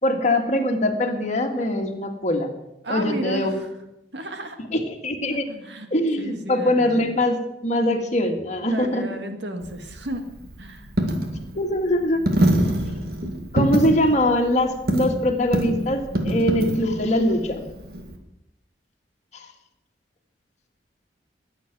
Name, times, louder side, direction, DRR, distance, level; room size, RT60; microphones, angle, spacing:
voice 1, 0.0-2.5 2.9-3.6 4.7-5.5 5.9-9.0 11.5-12.2 12.5-12.6 13.5-17.6 19.3-19.5, left 1 dB, 40° left, 3 dB, 1.9 m, -22 dB
voice 2, 2.8-3.7 4.1-4.6 5.5-5.9 6.2-7.2 8.6-10.2 10.6-10.9, right 1 dB, 85° right, 6 dB, 1.8 m, -33 dB
Coin (dropping), 9.6-18.2, right 1 dB, 60° right, 2.1 m, -25 dB
21.0 x 8.2 x 6.1 m, 0.88 s
head